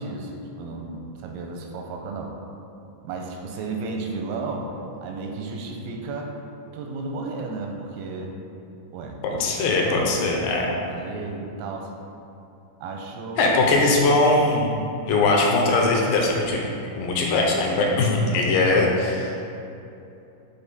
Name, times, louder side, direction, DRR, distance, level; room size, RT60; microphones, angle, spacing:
voice 1, 0.0-2.3 3.0-4.7 5.0-6.4 6.7-8.4 8.9-11.9 12.8-13.5, right 3 dB, 85° right, 2 dB, 2.4 m, -33 dB
voice 2, 9.2-10.7 13.4-14.7 15.1-16.6 17.0-19.3, left 2 dB, 80° left, -1 dB, 2.3 m, -20 dB
7.1 x 3.3 x 4.1 m, 2.7 s
omnidirectional pair, 4.2 m